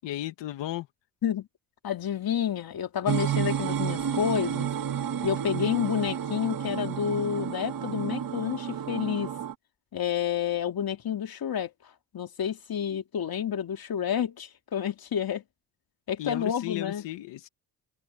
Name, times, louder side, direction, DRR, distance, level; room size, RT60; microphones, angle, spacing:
voice 1, 0.0-0.9 16.2-17.5, left 14 dB, 85° left, 1.7 m, -34 dB
voice 2, 1.8-4.7 5.2-9.3 9.9-11.7 12.1-15.4 16.1-17.0, left 8 dB, 55° left, 2.6 m, -29 dB
sound 1, 3.1-9.5, right 8 dB, 50° right, 2.0 m, -31 dB
cardioid pair, 75°, 42 cm